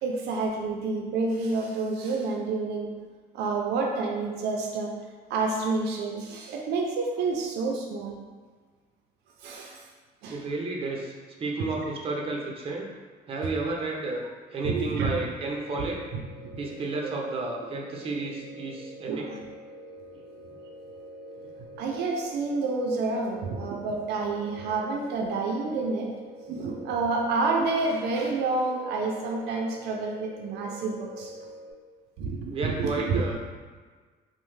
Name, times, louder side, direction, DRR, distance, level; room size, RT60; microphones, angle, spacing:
voice 1, 0.0-3.0 3.3-5.0 5.3-8.3 9.4-9.8 10.2-10.4 14.6-15.1 15.8-16.5 17.0-17.2 19.1-19.4 21.4-21.5 21.7-26.1 26.5-31.3 32.2-33.4, right 3 dB, 80° right, 0 dB, 0.4 m, -29 dB
voice 2, 10.3-11.1 11.4-12.9 13.3-14.2 14.5-16.0 16.6-19.3 32.5-33.4, right 3 dB, 35° right, -1 dB, 0.6 m, -32 dB
sound 1, 15.4-31.7, equal, 35° left, 0.8 m, -45 dB
3.1 x 2.0 x 3.1 m, 1.4 s
cardioid pair, 110°, 17 cm